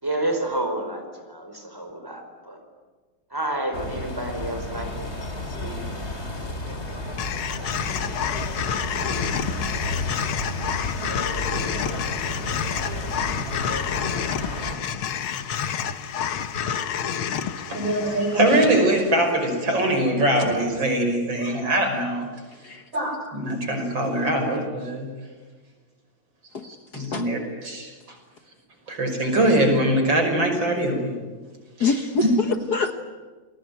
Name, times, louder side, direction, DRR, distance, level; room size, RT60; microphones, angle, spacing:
voice 1, 0.0-2.6 3.3-5.1 5.5-5.8, right 1 dB, 10° right, 5 dB, 4.8 m, -30 dB
sound 1, 3.7-14.8, left 1 dB, 30° left, 3.4 m, -32 dB
sound 2, 7.2-19.5, left 8 dB, 85° left, 2.1 m, -29 dB
voice 2, 17.7-22.3 22.9-25.1 26.6-27.4 27.6-27.9 28.9-31.1 31.8-31.9 32.2-32.3, right 1 dB, 65° right, 4 dB, 6.3 m, -22 dB
voice 3, 26.9-27.3 31.8-33.0, left 4 dB, 55° left, 8 dB, 1.8 m, -25 dB
29.0 x 21.0 x 9.4 m, 1.4 s
omnidirectional pair, 2.2 m